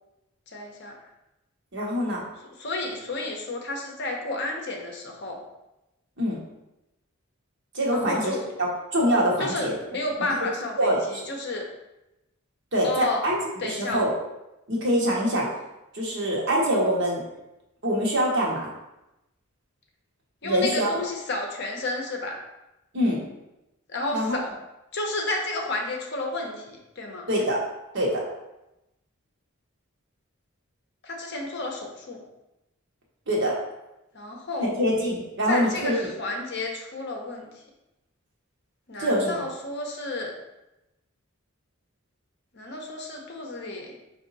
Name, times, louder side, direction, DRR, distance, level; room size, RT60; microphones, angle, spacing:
voice 1, 0.5-0.9 2.6-5.4 7.9-8.5 9.4-11.7 12.8-13.2 13.6-14.0 20.4-22.4 23.9-24.5 24.9-26.6 27.0-27.3 31.0-32.2 34.1-34.7 35.5-37.5 38.9-40.3 42.5-43.9, left 2 dB, 50° left, 1 dB, 0.7 m, -31 dB
voice 2, 1.7-2.2 6.2-6.4 7.7-9.7 10.8-11.2 12.7-14.1 14.7-15.5 15.9-17.2 17.8-18.6 20.4-20.9 22.9-23.3 24.1-24.4 27.3-27.6 27.9-28.1 33.3-33.5 34.6-35.9 39.0-39.4, equal, 55° right, -3 dB, 1.1 m, -24 dB
4.8 x 2.7 x 4.0 m, 0.94 s
head